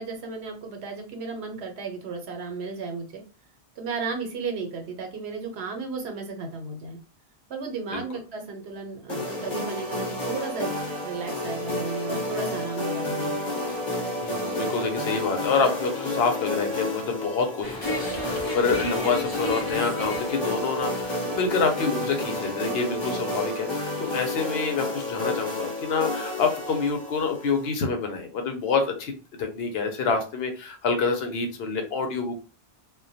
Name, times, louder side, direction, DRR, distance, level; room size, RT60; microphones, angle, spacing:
voice 1, 0.0-3.2 3.8-7.0 7.5-10.7 11.0-13.3, right 4 dB, 90° right, 3 dB, 1.0 m, -34 dB
sound 1, 9.1-27.7, left 1 dB, 50° left, 1.0 m, -31 dB
voice 2, 14.2-29.1 29.4-32.4, left 4 dB, 75° left, 5 dB, 0.8 m, -27 dB
sound 2, 17.6-23.1, left 1 dB, 30° left, 0.4 m, -36 dB
2.2 x 2.2 x 2.6 m, 0.34 s
omnidirectional pair, 1.0 m